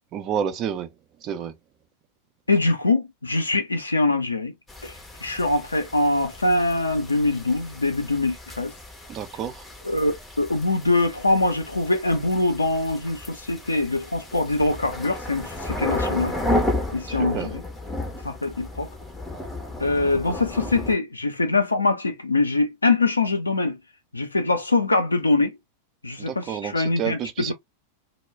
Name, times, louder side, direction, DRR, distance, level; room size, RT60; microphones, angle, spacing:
voice 1, 0.1-0.9 1.2-1.5 9.1-9.5 17.1-17.5 26.2-27.5, right 8 dB, 35° right, 0.5 m, -29 dB
voice 2, 2.5-4.5 4.8-4.9 5.2-8.7 9.8-10.1 10.4-16.3 16.9-17.6 18.2-18.9 19.8-23.8 24.1-25.5 26.0-27.5, left 2 dB, 80° left, 0.6 m, -23 dB
sound 1, 4.7-21.0, left 1 dB, 10° left, 0.7 m, -33 dB
2.2 x 2.1 x 3.3 m
figure-of-eight pair, 90°, 0 cm